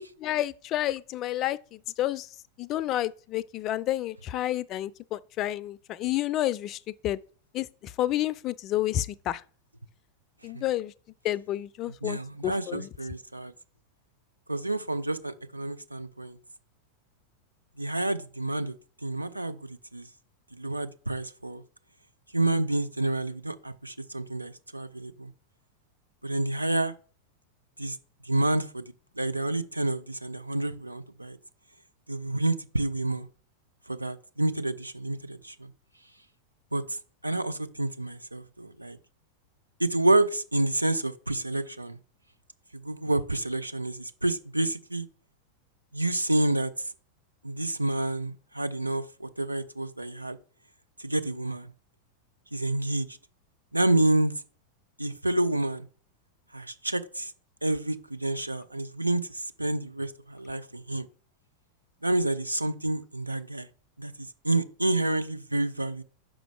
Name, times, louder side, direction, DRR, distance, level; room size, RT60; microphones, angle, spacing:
voice 1, 0.0-2.3 2.6-7.2 7.5-9.4 10.4-10.9 11.2-12.9, left 13 dB, 35° left, 0.3 m, -30 dB
voice 2, 12.0-13.5 14.5-16.4 17.8-18.7 19.0-20.1 20.5-21.6 22.3-25.3 26.2-26.9 27.8-28.0 28.2-31.4 32.1-33.3 33.9-35.7 36.7-36.8 37.2-39.0 39.8-42.0 42.7-45.1 45.9-46.9 47.4-50.4 51.0-51.7 52.5-53.2 53.7-54.3 55.0-55.9 56.5-57.3 57.6-61.1 62.0-63.7 64.0-66.0, right 2 dB, 85° right, 0.5 m, -29 dB
6.1 x 5.0 x 4.7 m
figure-of-eight pair, 90°, 0 cm